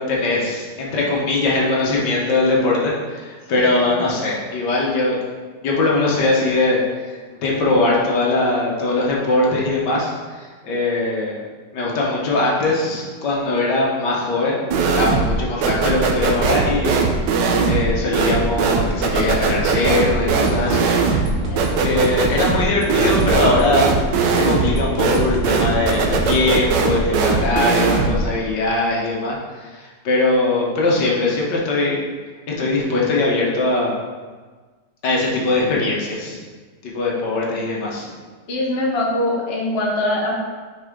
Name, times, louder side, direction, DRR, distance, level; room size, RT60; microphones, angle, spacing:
voice 1, 0.0-5.2 5.6-11.4 11.7-14.7 14.9-20.9 21.8-24.0 24.3-32.0 32.5-33.9 35.0-36.4 36.8-38.1, left 2 dB, 75° left, -3 dB, 1.7 m, -21 dB
voice 2, 3.5-3.9 21.4-21.8 38.5-40.3, left 1 dB, 40° left, -2 dB, 1.1 m, -23 dB
sound 1, 14.7-15.4 15.6-28.2, right 4 dB, 85° right, 1.3 m, -19 dB
sound 2, 20.3-26.5, equal, 40° right, 0.8 m, -31 dB
6.2 x 4.6 x 3.6 m, 1.4 s
omnidirectional pair, 1.9 m